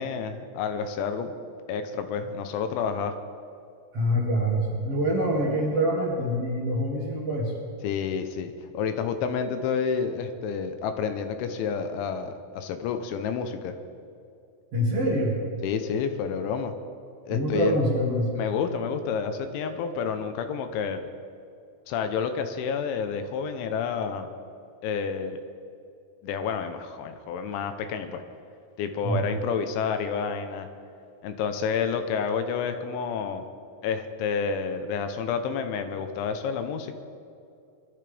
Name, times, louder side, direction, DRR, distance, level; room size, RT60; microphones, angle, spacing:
voice 1, 0.0-1.3 1.7-3.1 7.8-13.7 15.6-16.7 17.3-17.8 18.4-21.0 21.9-24.3 24.8-25.4 26.2-28.2 28.8-30.7 31.2-33.5 33.8-36.9, left 6 dB, 85° left, 8 dB, 3.2 m, -29 dB
voice 2, 3.9-7.5 14.7-15.4 17.3-18.3 29.0-29.3, equal, 45° right, -5 dB, 2.4 m, -25 dB
22.5 x 12.5 x 3.4 m, 2.6 s
omnidirectional pair, 5.3 m